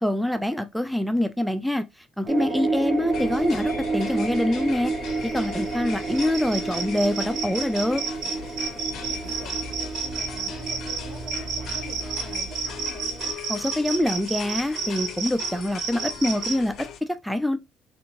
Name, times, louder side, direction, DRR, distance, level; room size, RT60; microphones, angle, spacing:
voice 1, 0.0-4.9 5.2-8.0 13.5-17.6, left 1 dB, ahead, 0.3 m, -25 dB
voice 2, 2.2-3.3 8.8-13.4, right 1 dB, 85° right, 1.6 m, -46 dB
sound 1, 2.3-13.3, right 3 dB, 25° right, 0.7 m, -31 dB
sound 2, 3.1-17.0, left 8 dB, 55° left, 0.5 m, -40 dB
sound 3, 5.1-16.6, right 6 dB, 65° right, 0.7 m, -32 dB
3.4 x 2.6 x 2.9 m
cardioid pair, 150°, 0 cm